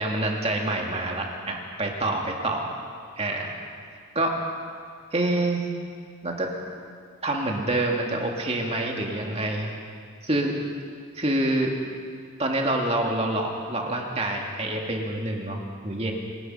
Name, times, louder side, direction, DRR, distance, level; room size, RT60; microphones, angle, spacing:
voice 1, 0.0-2.7 3.2-3.5 4.1-4.3 5.1-5.7 6.2-6.5 7.2-9.7 10.2-10.5 11.2-11.7 12.4-16.1, right 1 dB, 30° right, 0 dB, 2.4 m, -26 dB
27.0 x 19.5 x 5.7 m, 2.1 s
head